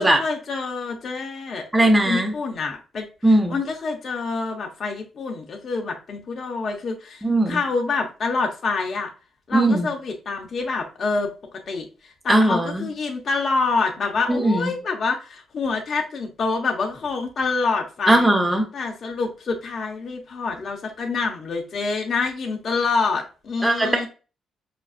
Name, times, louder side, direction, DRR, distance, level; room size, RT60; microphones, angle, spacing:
voice 1, 0.0-1.7 2.0-3.1 3.5-9.1 9.5-11.3 11.7-18.3 18.7-24.1, left 4 dB, 50° left, 2 dB, 0.6 m, -26 dB
voice 2, 1.7-2.3 3.2-3.6 7.2-7.6 9.5-9.9 12.3-12.9 14.3-14.7 18.1-18.7 23.6-24.1, right 1 dB, 15° right, 3 dB, 0.9 m, -19 dB
5.0 x 2.4 x 2.4 m, 0.33 s
cardioid pair, 75°, 0 cm